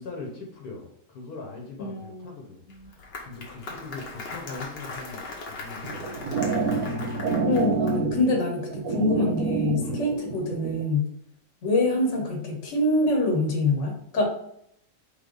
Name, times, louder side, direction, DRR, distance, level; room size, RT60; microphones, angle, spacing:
voice 1, 0.0-5.2 5.6-7.1 9.8-10.0, left 4 dB, 65° left, -1 dB, 1.4 m, -41 dB
voice 2, 1.8-2.4 2.7-2.9 7.4-11.1 11.6-14.3, left 2 dB, 50° left, 2 dB, 1.2 m, -25 dB
Applause, 2.7-8.2, left 3 dB, 90° left, 1.6 m, -39 dB
sound 1, 5.8-10.8, right 4 dB, 65° right, 0.9 m, -28 dB
4.1 x 3.4 x 3.9 m, 0.72 s
omnidirectional pair, 1.8 m